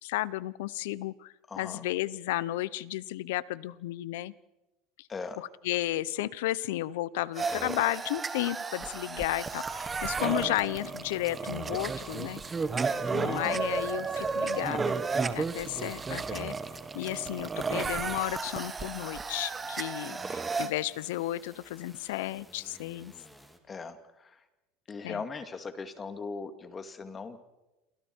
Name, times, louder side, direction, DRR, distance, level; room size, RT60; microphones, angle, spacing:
voice 1, 0.0-4.3 5.0-5.1 5.4-12.4 13.1-15.0 15.3-16.6 16.9-23.1 25.0-25.2, left 16 dB, 80° left, 19 dB, 0.9 m, -33 dB
voice 2, 1.5-1.8 5.1-5.4 13.3-13.6 20.1-20.5 23.7-24.4 24.9-27.4, left 4 dB, 25° left, 8 dB, 2.3 m, -40 dB
sound 1, 7.4-20.7, right 4 dB, 20° right, 1.5 m, -33 dB
sound 2, 9.4-23.6, equal, ahead, 2.6 m, -57 dB
28.5 x 23.5 x 4.7 m, 1.0 s
supercardioid pair, 125°, 0 cm